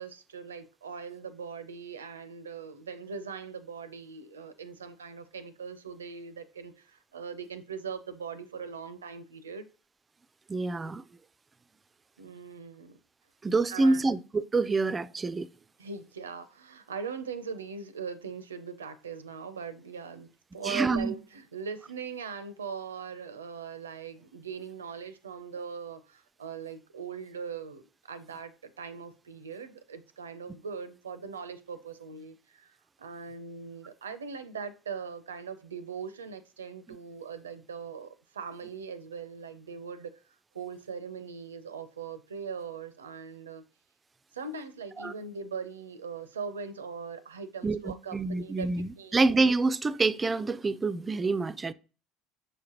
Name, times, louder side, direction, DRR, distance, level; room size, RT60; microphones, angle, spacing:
voice 1, 0.0-9.6 12.2-13.0 13.7-14.1 15.8-43.6 44.3-48.7 49.0-49.2, right 6 dB, 80° right, 0.5 m, -40 dB
voice 2, 10.5-11.0 13.4-15.5 20.6-21.1 45.0-45.1 47.6-51.7, right 3 dB, 25° right, 0.4 m, -27 dB
6.5 x 4.9 x 2.9 m
figure-of-eight pair, 65°, 0 cm